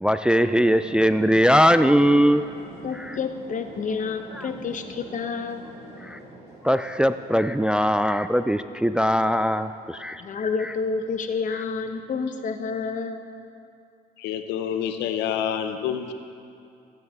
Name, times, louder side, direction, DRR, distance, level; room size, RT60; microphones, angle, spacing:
voice 1, 0.0-2.4 2.9-3.2 4.4-4.5 6.0-6.2 6.6-10.2 10.6-10.7 11.5-11.6, equal, 5° right, 11 dB, 0.3 m, -20 dB
sound 1, 0.6-11.9, right 1 dB, 75° right, 2.3 m, -46 dB
voice 2, 2.8-5.7 10.2-13.2, left 5 dB, 50° left, 7 dB, 0.9 m, -29 dB
voice 3, 14.2-16.1, left 9 dB, 90° left, 7 dB, 0.7 m, -27 dB
14.5 x 9.6 x 3.6 m, 2.5 s
cardioid pair, 80°, 17 cm